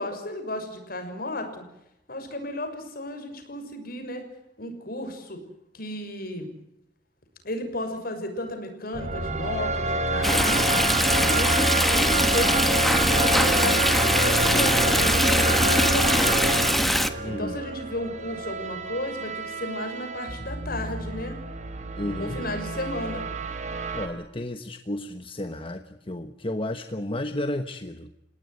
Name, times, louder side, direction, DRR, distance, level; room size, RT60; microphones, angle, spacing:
voice 1, 0.0-1.6 2.1-4.2 4.6-5.4 5.7-6.5 7.4-10.8 11.3-11.6 11.9-16.5 17.2-21.4 22.2-23.3, left 1 dB, 55° left, 6 dB, 6.5 m, -33 dB
sound 1, 8.9-24.1, right 2 dB, 40° right, 3.7 m, -27 dB
Stream, 10.2-17.1, equal, ahead, 1.5 m, -22 dB
voice 2, 17.2-17.6 22.0-22.4 23.9-28.1, left 1 dB, 30° left, 8 dB, 1.3 m, -32 dB
29.5 x 18.0 x 9.5 m, 0.84 s
head